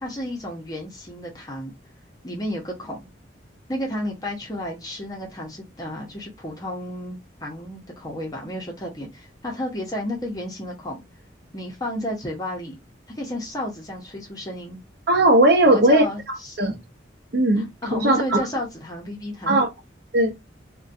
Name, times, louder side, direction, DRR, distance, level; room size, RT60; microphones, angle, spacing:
voice 1, 0.0-1.7 2.2-3.0 3.7-11.0 11.5-12.8 13.1-14.8 15.6-16.6 17.6-19.6, left 1 dB, 20° left, 0.7 m, -32 dB
voice 2, 15.1-16.0 16.6-16.8 17.3-18.4 19.5-19.7 20.1-20.3, right 1 dB, 60° right, 0.6 m, -18 dB
2.5 x 2.2 x 2.5 m
head